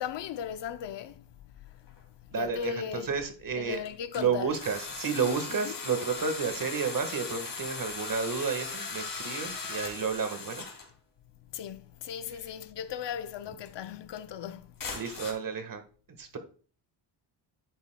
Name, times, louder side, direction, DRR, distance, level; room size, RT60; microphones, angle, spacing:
voice 1, 0.0-3.2 3.5-4.6 5.5-5.8 11.5-15.0, left 8 dB, 65° left, 0.7 m, -38 dB
sound 1, 1.9-2.0 2.6-2.7 3.7-4.2 4.5-10.9 13.0-13.2 13.6-13.7 14.8-15.3, left 4 dB, 45° left, 2.7 m, -38 dB
voice 2, 2.3-2.7 3.1-3.8 4.1-10.6 14.9-15.8 16.2-16.4, right 5 dB, 45° right, 1.5 m, -31 dB
10.5 x 8.3 x 2.2 m
cardioid pair, 120°, 45 cm